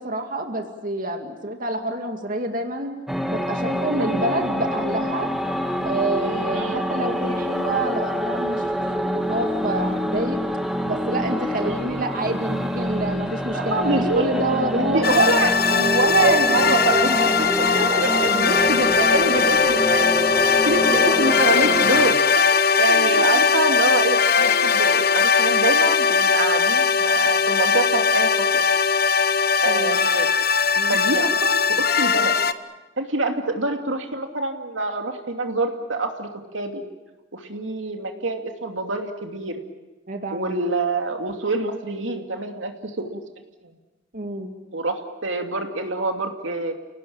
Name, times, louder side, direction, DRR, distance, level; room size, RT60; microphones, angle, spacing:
voice 1, 0.0-2.9 3.3-5.3 5.8-8.6 9.0-10.4 10.9-15.5 16.2-18.4 20.4-20.6 21.2-21.3 22.6-23.3 29.7-30.0 30.8-31.0 40.1-40.6 44.1-44.5, right 1 dB, 45° right, 4 dB, 2.3 m, -27 dB
sound 1, 3.1-22.1, equal, ahead, 1.8 m, -26 dB
voice 2, 4.0-4.3 6.5-6.9 11.6-11.8 13.5-14.4 14.9-17.0 17.6-17.7 18.0-20.1 20.4-22.4 22.8-28.6 29.6-30.3 30.9-32.4 33.0-36.8 37.3-39.6 40.3-43.2 43.6-43.7 44.7-46.7, right 2 dB, 85° right, 4 dB, 2.7 m, -25 dB
sound 2, 15.0-32.5, left 6 dB, 55° left, 1.0 m, -20 dB
30.0 x 18.5 x 8.8 m, 1.1 s
head